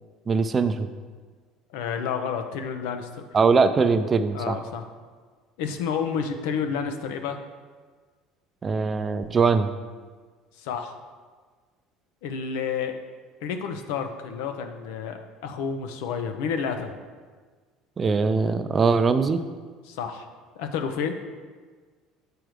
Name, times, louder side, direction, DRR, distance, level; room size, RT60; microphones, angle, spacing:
voice 1, 0.3-0.9 3.3-4.6 8.6-9.7 18.0-19.4, right 4 dB, 25° right, 10 dB, 0.4 m, -21 dB
voice 2, 1.7-3.2 4.3-4.8 5.6-7.4 10.6-11.0 12.2-13.0 13.4-17.0 19.9-20.2 20.6-21.1, left 6 dB, 85° left, 7 dB, 0.7 m, -30 dB
7.8 x 4.7 x 5.0 m, 1.5 s
cardioid pair, 140°, 0 cm